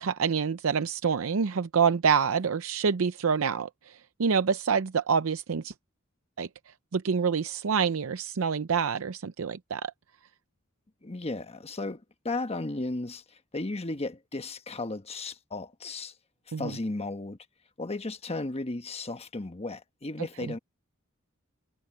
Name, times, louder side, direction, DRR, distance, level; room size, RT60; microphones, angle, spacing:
voice 1, 0.0-5.7 6.4-9.9 16.5-16.7, right 6 dB, 75° right, 0.6 m, -27 dB
voice 2, 11.0-16.1 16.6-17.4 17.8-20.6, left 2 dB, 30° left, 1.2 m, -35 dB
head